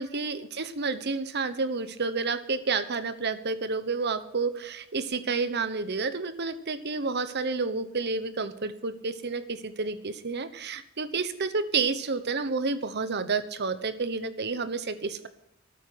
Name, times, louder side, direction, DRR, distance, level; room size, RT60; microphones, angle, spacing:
voice 1, 0.0-15.3, right 4 dB, 55° right, 12 dB, 1.0 m, -30 dB
13.0 x 9.1 x 7.8 m, 0.80 s
head